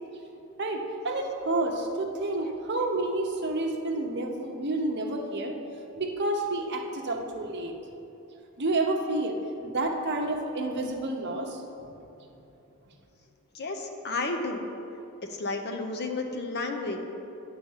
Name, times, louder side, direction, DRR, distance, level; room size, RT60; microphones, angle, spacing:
voice 1, 0.6-5.6 6.0-7.7 8.6-11.6, right 2 dB, 50° right, 2 dB, 0.9 m, -29 dB
voice 2, 13.5-14.7 15.4-17.0, left 3 dB, 50° left, 4 dB, 0.7 m, -32 dB
10.0 x 3.9 x 7.2 m, 2.9 s
head